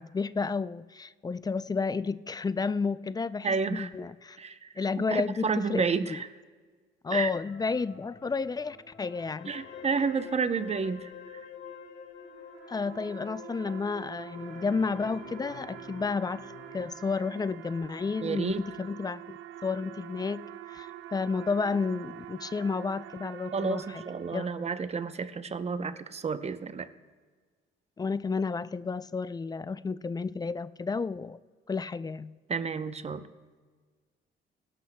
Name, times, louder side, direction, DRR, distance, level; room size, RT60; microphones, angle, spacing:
voice 1, 0.0-4.4 4.8-6.2 7.0-9.5 12.7-16.5 16.7-24.0 24.3-24.5 28.0-31.4 31.7-32.3, left 4 dB, 20° left, 16 dB, 0.3 m, -31 dB
voice 2, 3.4-3.9 4.4-4.7 5.0-6.3 7.1-7.3 9.5-11.4 18.2-18.6 23.5-26.9 32.5-33.2, right 5 dB, 30° right, 12 dB, 0.7 m, -31 dB
sound 1, 7.4-16.9, left 6 dB, 65° left, 1.8 m, -47 dB
sound 2, 12.2-25.0, right 13 dB, 75° right, 0.5 m, -46 dB
22.5 x 12.0 x 2.2 m, 1.5 s
cardioid pair, 90°, 20 cm